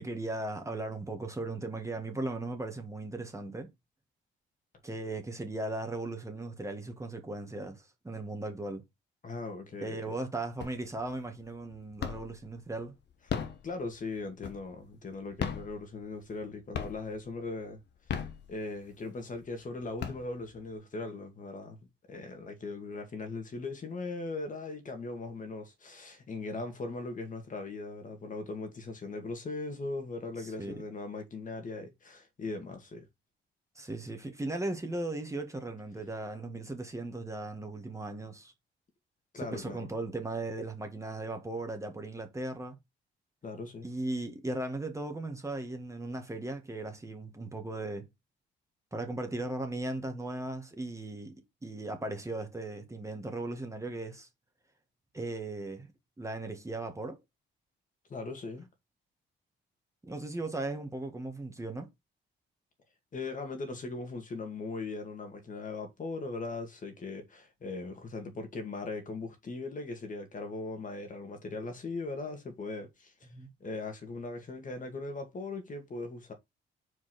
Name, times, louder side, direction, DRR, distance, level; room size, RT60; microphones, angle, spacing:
voice 1, 0.0-3.7 4.8-8.8 9.8-12.9 30.4-30.8 33.8-38.5 39.4-42.8 43.8-48.1 48.9-54.3 55.1-55.9 56.2-57.2 60.0-61.9 73.3-73.5, right 2 dB, 15° right, 1.9 m, -37 dB
voice 2, 9.2-10.0 13.6-17.8 18.5-21.8 22.1-33.1 39.3-39.9 43.4-43.9 58.1-58.7 63.1-73.3 73.6-76.3, left 3 dB, 40° left, 2.2 m, -39 dB
sound 1, 10.6-11.1 11.5-12.5 13.1-14.9 15.3-16.4 16.7-17.3 17.9-19.0 19.5-19.6 19.8-20.7, left 8 dB, 60° left, 1.3 m, -37 dB
4.9 x 4.6 x 6.0 m
cardioid pair, 90°, 20 cm